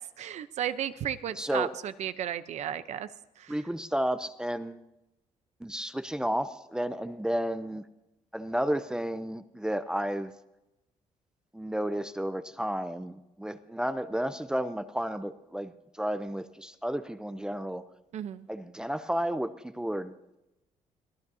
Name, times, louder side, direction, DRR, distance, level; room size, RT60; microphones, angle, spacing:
voice 1, 0.2-3.1 3.4-3.6 18.1-18.5, right 10 dB, 65° right, 13 dB, 0.8 m, -34 dB
voice 2, 1.4-1.7 3.5-4.8 5.6-7.8 8.3-10.3 11.5-17.8 18.5-20.4, equal, 5° right, 11 dB, 0.6 m, -32 dB
23.0 x 15.5 x 2.8 m, 0.94 s
cardioid pair, 115°, 13 cm